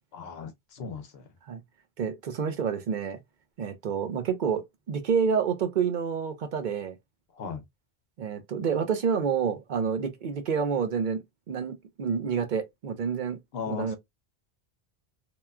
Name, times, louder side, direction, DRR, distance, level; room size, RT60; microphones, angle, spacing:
voice 1, 0.1-1.3 7.3-7.6 13.5-14.0, left 6 dB, 75° left, 0.9 m, -37 dB
voice 2, 2.0-3.2 3.6-7.0 8.2-11.2 11.5-13.4 13.7-14.0, right 6 dB, 60° right, 0.6 m, -28 dB
2.9 x 2.2 x 2.2 m
omnidirectional pair, 1.1 m